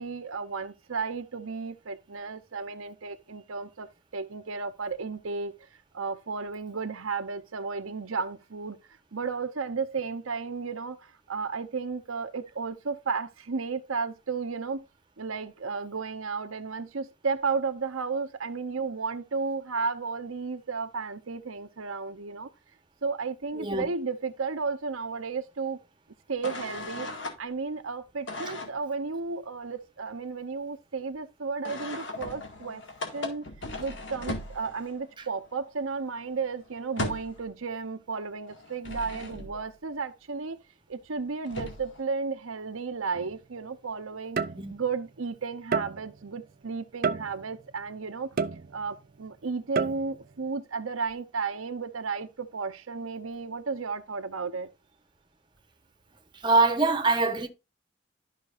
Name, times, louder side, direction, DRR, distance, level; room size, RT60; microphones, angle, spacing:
voice 1, 0.0-3.9 4.1-5.5 5.9-8.8 9.1-14.8 15.2-22.5 23.0-25.8 26.3-32.8 33.1-33.5 33.8-40.6 40.9-44.4 44.7-48.3 48.7-54.7, right 4 dB, 85° right, 0.9 m, -33 dB
voice 2, 23.6-23.9 44.6-44.7 56.4-57.5, right 3 dB, 20° right, 1.1 m, -23 dB
sound 1, 26.4-27.4 28.3-28.8 31.6-35.0 35.4-35.5 35.8-37.5 38.5-39.7 41.1-41.2 41.4-42.0, left 2 dB, 65° left, 2.0 m, -37 dB
sound 2, 43.1-43.4 44.4-45.0 45.7-46.3 47.0-47.7 48.4-49.1 49.8-50.3, right 5 dB, 45° right, 0.5 m, -30 dB
12.0 x 5.9 x 2.5 m
head